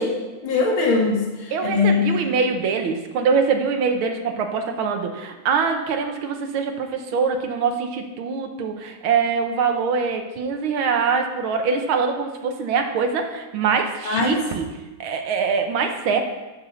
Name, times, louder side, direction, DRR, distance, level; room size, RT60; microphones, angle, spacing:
voice 1, 0.0-2.2 14.1-14.5, left 4 dB, 85° left, -1 dB, 2.4 m, -21 dB
voice 2, 1.5-14.7 15.0-16.2, right 5 dB, 85° right, 4 dB, 1.8 m, -23 dB
9.0 x 5.5 x 6.9 m, 1.1 s
omnidirectional pair, 2.2 m